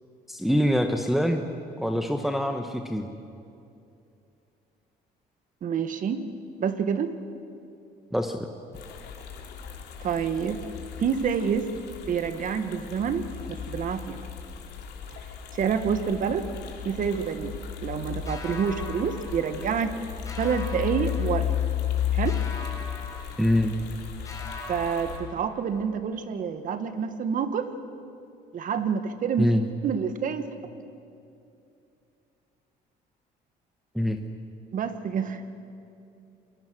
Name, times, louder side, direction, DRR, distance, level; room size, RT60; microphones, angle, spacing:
voice 1, 0.3-1.4 1.8-3.1 8.1-8.4 23.4-23.8 29.4-29.6 33.9-34.2, equal, ahead, 4 dB, 1.1 m, -24 dB
voice 2, 5.6-6.2 6.6-7.1 10.0-10.6 11.0-11.7 12.1-14.2 15.5-16.5 16.8-17.5 17.8-19.9 20.4-21.5 22.1-22.4 24.7-27.7 28.5-29.5 29.8-30.5 34.7-35.4, right 7 dB, 50° right, 9 dB, 1.6 m, -27 dB
sound 1, 8.7-25.2, left 9 dB, 75° left, 3.2 m, -34 dB
sound 2, 18.3-20.0 20.3-21.9 22.3-24.0 24.3-25.9, left 3 dB, 20° left, 4.2 m, -42 dB
28.5 x 21.0 x 6.3 m, 2.6 s
cardioid pair, 110°, 17 cm